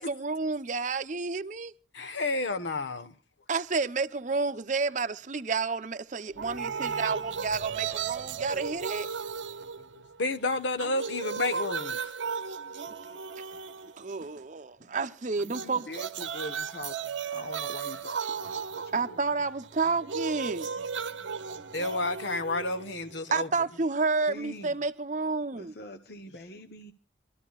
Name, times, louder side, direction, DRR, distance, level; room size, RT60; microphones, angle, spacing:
voice 1, 0.0-1.7 3.5-9.1 14.0-15.9 18.9-20.7 23.3-25.7, right 4 dB, 40° right, 0.7 m, -30 dB
voice 2, 1.9-3.1 9.8-12.0 21.7-23.5, left 2 dB, 80° left, 1.2 m, -31 dB
sound 1, 6.3-11.1 11.3-11.4, left 1 dB, 20° left, 1.2 m, -52 dB
sound 2, 6.4-10.3 10.6-14.4 15.4-23.4, right 6 dB, 85° right, 0.8 m, -36 dB
voice 3, 15.5-19.2 24.3-24.8 25.5-26.9, left 1 dB, 55° left, 0.9 m, -43 dB
25.0 x 13.0 x 2.3 m
head